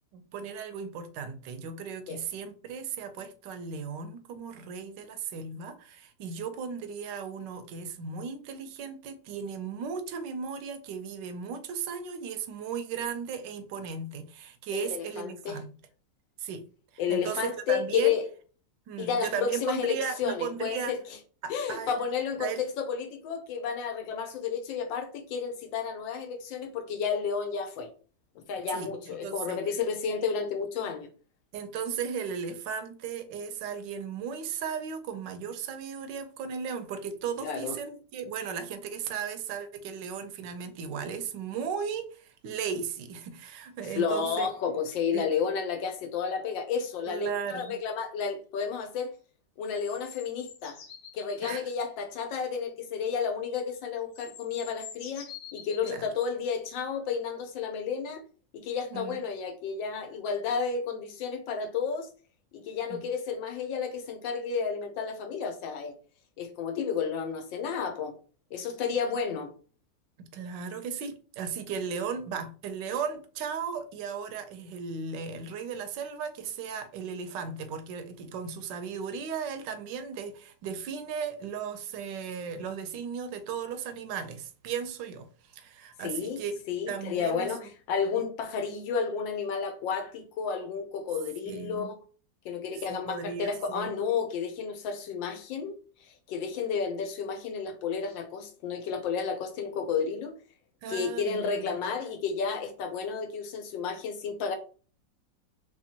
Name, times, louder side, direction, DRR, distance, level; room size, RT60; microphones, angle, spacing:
voice 1, 0.1-15.7 16.4-16.7 17.1-18.1 18.9-20.9 21.4-22.0 22.4-22.6 28.7-28.9 29.2-29.6 31.5-44.5 45.1-45.3 47.1-47.8 51.4-51.7 55.8-56.1 58.9-59.2 62.9-63.0 70.2-86.6 86.9-87.5 91.5-91.9 92.7-93.9 100.8-101.7, right 6 dB, 80° right, 1.2 m, -36 dB
voice 2, 14.7-15.6 17.0-18.2 19.0-21.0 21.5-27.9 28.5-31.1 37.4-37.8 43.9-49.1 49.6-50.8 51.1-58.2 58.5-62.1 62.5-65.9 66.4-68.1 68.5-69.5 86.0-86.4 86.7-92.0 92.4-95.8 96.0-100.3 100.9-104.6, left 6 dB, 85° left, 1.4 m, -31 dB
sound 1, 47.5-47.8 49.6-51.6 53.5-53.6 54.0-56.0 57.1-57.2, left 8 dB, 70° left, 1.2 m, -47 dB
3.5 x 3.2 x 2.8 m
omnidirectional pair, 2.0 m